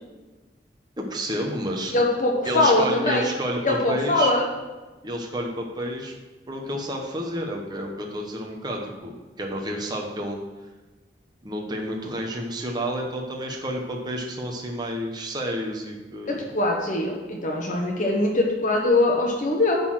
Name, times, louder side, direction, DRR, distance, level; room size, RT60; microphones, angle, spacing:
voice 1, 1.0-1.9 2.4-4.3 5.0-6.1 6.5-10.4 11.4-16.4, equal, 25° right, 0 dB, 1.0 m, -30 dB
voice 2, 1.9-3.2 3.6-4.4 16.3-19.8, left 2 dB, 45° left, -1 dB, 1.2 m, -22 dB
10.5 x 4.0 x 6.2 m, 1.2 s
head